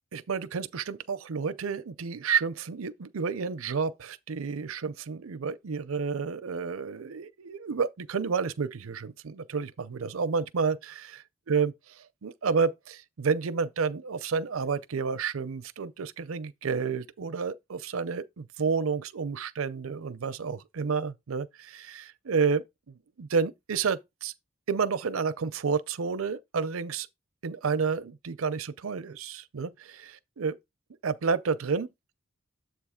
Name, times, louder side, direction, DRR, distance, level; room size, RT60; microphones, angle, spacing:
voice 1, 0.1-11.7 12.2-24.3 24.7-27.1 27.4-30.6 31.0-31.9, right 5 dB, 85° right, 0.6 m, -30 dB
7.6 x 3.2 x 5.0 m
head